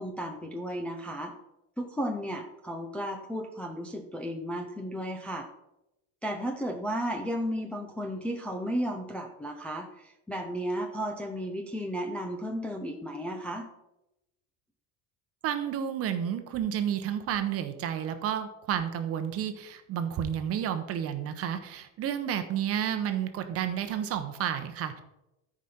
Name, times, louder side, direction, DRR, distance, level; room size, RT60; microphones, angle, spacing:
voice 1, 0.0-1.3 1.8-5.5 6.2-13.7, equal, 5° left, 1 dB, 0.4 m, -34 dB
voice 2, 15.4-25.0, right 9 dB, 40° right, 9 dB, 0.9 m, -31 dB
13.0 x 5.1 x 4.3 m, 0.91 s
cardioid pair, 165°, 37 cm